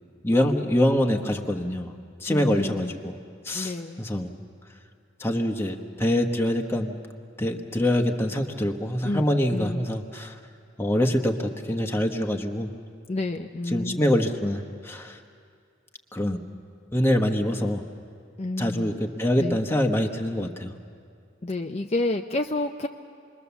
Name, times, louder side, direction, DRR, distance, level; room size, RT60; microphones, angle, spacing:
voice 1, 0.2-1.9 2.2-3.2 3.4-4.3 5.2-7.0 7.4-10.3 10.8-12.7 13.7-15.2 16.1-16.4 16.9-17.8 18.6-20.7, left 1 dB, 15° left, 3 dB, 1.2 m, -25 dB
voice 2, 2.3-2.9 3.5-4.1 9.0-9.3 9.5-9.9 13.1-14.1 18.4-18.9 19.4-19.6 21.4-22.9, left 2 dB, 35° left, 3 dB, 0.6 m, -29 dB
27.5 x 21.5 x 7.1 m, 2.3 s
head